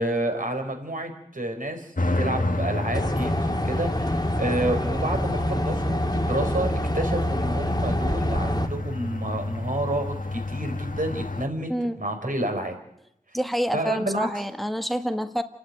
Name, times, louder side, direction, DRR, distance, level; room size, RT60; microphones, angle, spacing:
voice 1, 0.0-11.7 12.0-12.8 13.7-14.3, right 1 dB, 65° right, 5 dB, 4.6 m, -29 dB
sound 1, 2.0-11.5, left 2 dB, 65° left, 1.6 m, -31 dB
sound 2, 2.9-8.7, equal, 30° left, 2.2 m, -26 dB
voice 2, 13.3-15.4, equal, ahead, 7 dB, 1.6 m, -27 dB
29.5 x 11.0 x 9.5 m, 0.78 s
wide cardioid pair, 40°, 15 cm